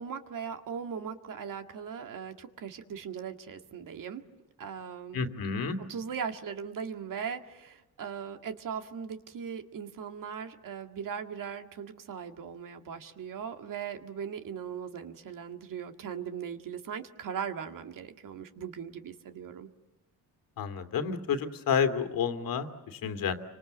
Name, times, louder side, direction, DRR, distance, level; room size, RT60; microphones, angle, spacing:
voice 1, 0.0-4.2 4.6-5.3 5.9-19.7, right 7 dB, 55° right, 6 dB, 2.0 m, -39 dB
voice 2, 5.1-5.8 20.6-23.4, left 6 dB, 65° left, 8 dB, 2.6 m, -30 dB
29.5 x 25.5 x 8.0 m, 1.0 s
cardioid pair, 110°, 37 cm